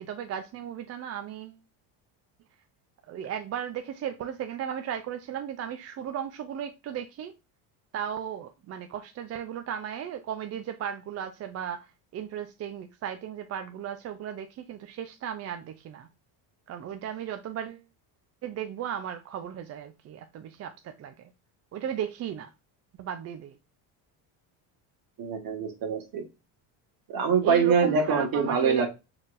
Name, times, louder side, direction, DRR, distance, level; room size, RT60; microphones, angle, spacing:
voice 1, 0.0-1.6 3.1-7.3 7.9-16.1 16.7-17.8 18.4-21.3 21.7-22.5 23.0-23.6 27.4-28.9, right 9 dB, 35° right, 0.4 m, -35 dB
voice 2, 25.2-26.2 27.1-28.9, right 5 dB, 55° right, 1.6 m, -24 dB
4.2 x 4.0 x 2.4 m
cardioid pair, 125°, 43 cm